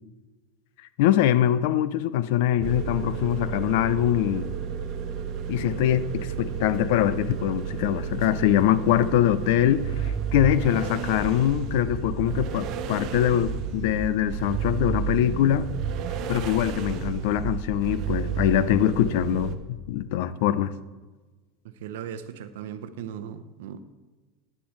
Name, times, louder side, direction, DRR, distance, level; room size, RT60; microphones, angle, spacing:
voice 1, 1.0-4.5 5.5-15.7 16.3-20.7, left 12 dB, 70° left, 16 dB, 0.4 m, -23 dB
sound 1, 2.6-19.6, right 7 dB, 50° right, 0.7 m, -31 dB
voice 2, 21.6-23.8, right 9 dB, 85° right, 11 dB, 0.6 m, -38 dB
10.0 x 9.9 x 3.2 m, 1.3 s
supercardioid pair, 130°, 0 cm